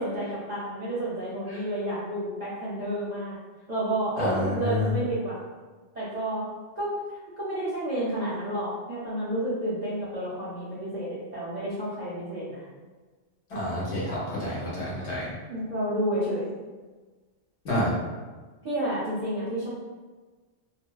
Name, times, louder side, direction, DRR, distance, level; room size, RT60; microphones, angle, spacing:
voice 1, 0.0-3.4 3.7-5.4 5.9-6.4 6.8-6.9 7.4-12.6 15.5-16.4 18.6-19.7, right 1 dB, 45° right, -9 dB, 0.6 m, -30 dB
voice 2, 4.2-4.9 13.5-15.3 17.6-17.9, left 1 dB, 65° left, -6 dB, 1.1 m, -29 dB
2.6 x 2.0 x 2.2 m, 1.3 s
omnidirectional pair, 1.2 m